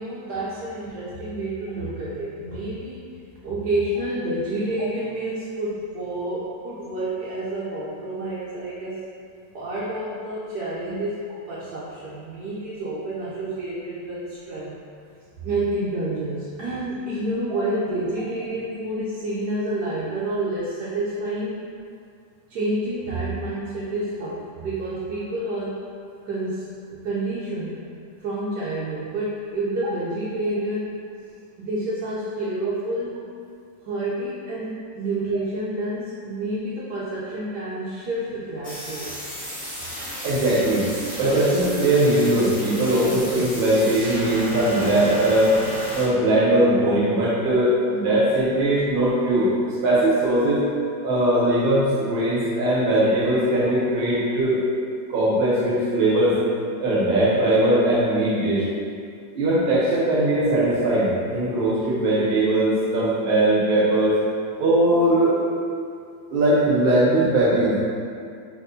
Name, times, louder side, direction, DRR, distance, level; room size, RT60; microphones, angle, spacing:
voice 1, 0.0-3.1 3.4-9.0 9.5-14.8 15.4-21.6 22.5-25.8 26.2-27.8 28.2-31.0 31.6-33.2 33.8-39.2 42.9-43.2, right 1 dB, 75° right, -9 dB, 1.3 m, -29 dB
sound 1, 38.6-46.0, left 1 dB, 10° left, 1.3 m, -34 dB
voice 2, 40.2-40.9 41.2-45.5 45.9-50.6 51.0-54.6 55.1-56.4 56.8-58.6 59.3-64.2 64.6-65.3 66.3-67.8, right 1 dB, 40° right, -6 dB, 0.8 m, -20 dB
5.8 x 3.1 x 2.7 m, 2.3 s
omnidirectional pair, 1.9 m